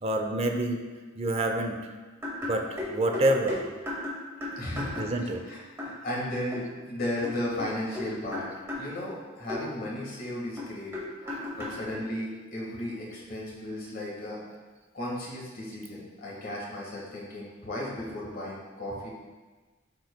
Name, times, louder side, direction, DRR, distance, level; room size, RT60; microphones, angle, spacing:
voice 1, 0.0-0.8 1.2-1.8 2.4-3.6 5.0-5.4 11.2-11.5, right 1 dB, 30° right, 4 dB, 0.6 m, -27 dB
sound 1, 2.2-5.4 5.8-6.0 6.5-6.6 7.2-8.9 9.5-9.6 10.6-11.8, left 2 dB, 15° right, 1.8 m, -35 dB
voice 2, 4.6-5.1 5.5-8.5 8.8-11.0 11.5-14.4 14.9-19.1, left 1 dB, 50° left, -4 dB, 1.6 m, -35 dB
12.0 x 4.8 x 2.2 m, 1.3 s
head